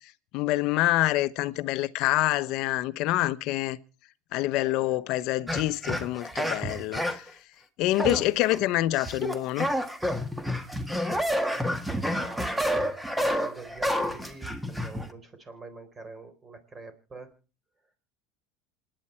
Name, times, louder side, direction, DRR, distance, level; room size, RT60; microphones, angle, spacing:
voice 1, 0.3-3.8 4.3-7.3 7.8-9.7, left 17 dB, 60° left, 1.0 m, -26 dB
voice 2, 4.6-4.9 12.0-12.9 13.4-17.3, right 3 dB, 25° right, 4.0 m, -45 dB
sound 1, 5.5-7.3 7.9-8.6 9.0-15.1, equal, 5° right, 1.8 m, -29 dB
27.0 x 10.0 x 4.5 m
supercardioid pair, 120°, 0 cm